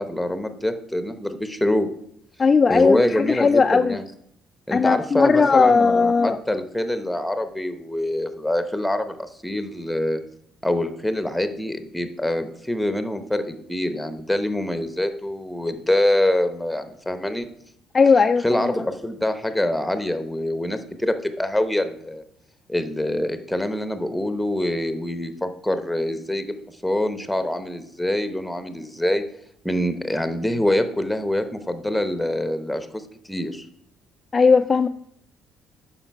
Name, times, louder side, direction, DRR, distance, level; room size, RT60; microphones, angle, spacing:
voice 1, 0.0-1.9 2.7-4.0 4.7-10.2 10.6-17.5 18.4-22.2 22.7-26.5 26.8-29.2 29.6-32.9 33.2-33.6, left 1 dB, 5° left, 9 dB, 0.8 m, -25 dB
voice 2, 2.4-4.0 4.7-6.4 17.9-18.7 34.3-34.9, left 5 dB, 30° left, 8 dB, 0.3 m, -17 dB
8.8 x 5.7 x 4.6 m, 0.71 s
cardioid pair, 110°, 0 cm